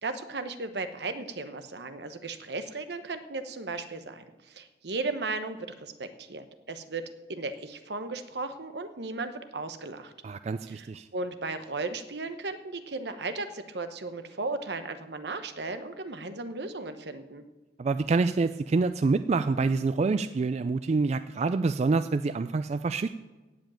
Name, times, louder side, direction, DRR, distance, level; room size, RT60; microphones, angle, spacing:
voice 1, 0.0-10.1 10.7-17.4, right 3 dB, 70° right, 9 dB, 1.0 m, -36 dB
voice 2, 10.2-11.1 17.8-23.1, right 4 dB, 40° right, 11 dB, 0.3 m, -26 dB
15.5 x 5.2 x 8.8 m, 1.2 s
head